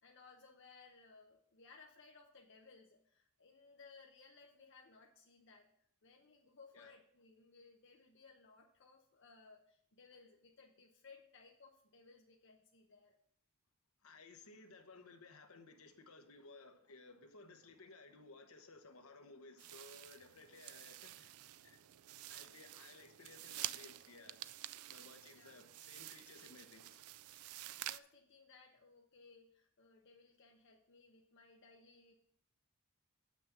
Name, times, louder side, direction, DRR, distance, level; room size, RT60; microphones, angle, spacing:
voice 1, 0.0-5.7 6.0-13.2 20.2-20.3 25.3-25.7 27.8-32.1, left 4 dB, 55° left, 0.8 m, -62 dB
voice 2, 14.0-21.3 21.6-21.8 22.3-24.4 24.9-27.0, left 3 dB, 80° left, 1.1 m, -58 dB
sound 1, 19.6-28.0, right 14 dB, 90° right, 0.4 m, -49 dB
7.1 x 6.1 x 5.9 m
head